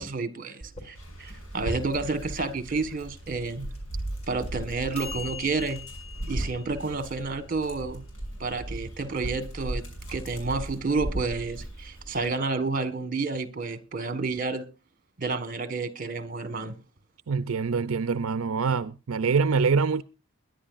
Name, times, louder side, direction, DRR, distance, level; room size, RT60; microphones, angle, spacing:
voice 1, 0.0-3.7 4.3-5.8 6.3-8.0 8.4-9.8 10.1-14.6 15.2-16.7, right 3 dB, 40° right, 1.5 m, -30 dB
sound 1, 0.6-8.8, left 4 dB, 30° left, 4.1 m, -45 dB
Dog, 0.9-12.3, right 1 dB, 70° left, 6.6 m, -37 dB
voice 2, 17.3-20.0, right 5 dB, 80° right, 0.5 m, -25 dB
21.5 x 10.5 x 2.5 m
head